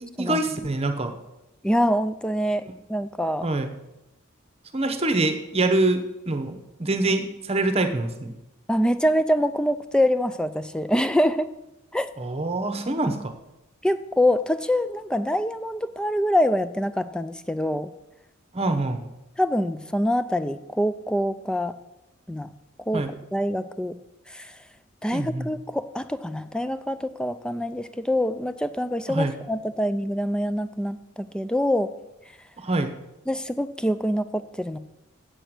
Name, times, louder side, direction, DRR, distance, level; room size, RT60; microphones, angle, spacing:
voice 1, 0.0-1.1 3.4-3.7 4.7-8.3 12.2-13.3 18.5-19.0 22.9-23.1 25.1-25.5 29.1-29.3 32.6-32.9, right 2 dB, 30° right, 8 dB, 0.9 m, -25 dB
voice 2, 1.6-3.5 8.7-11.5 11.9-12.1 13.8-17.9 19.4-21.7 22.3-22.5 22.9-24.0 24.3-24.5 25.0-31.9 33.3-34.8, equal, 5° left, 12 dB, 0.3 m, -25 dB
8.4 x 8.0 x 6.1 m, 0.93 s
head